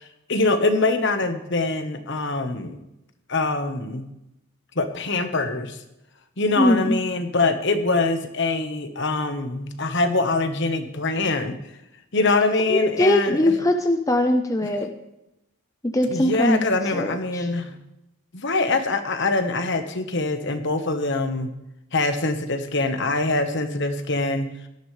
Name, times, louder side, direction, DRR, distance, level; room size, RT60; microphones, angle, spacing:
voice 1, 0.0-2.8 3.3-4.1 4.7-5.8 6.4-11.6 12.1-13.5 16.1-17.8 18.3-21.5 21.9-24.5, left 3 dB, 55° left, 7 dB, 1.3 m, -24 dB
voice 2, 6.6-7.0 12.7-14.9 15.9-16.7 16.9-17.4, left 1 dB, 15° left, 5 dB, 0.8 m, -21 dB
17.5 x 12.5 x 3.3 m, 0.89 s
head